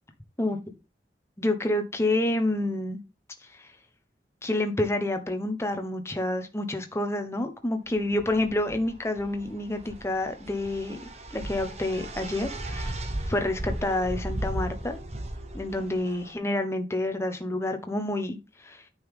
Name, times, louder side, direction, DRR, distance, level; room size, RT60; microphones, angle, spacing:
voice 1, 1.4-3.0 3.5-3.7 4.4-11.0 11.3-13.0 13.3-15.0 15.5-18.8, left 1 dB, 15° left, 1.1 m, -28 dB
sound 1, 8.0-16.3, right 1 dB, 40° right, 1.3 m, -36 dB
9.5 x 5.5 x 3.6 m
head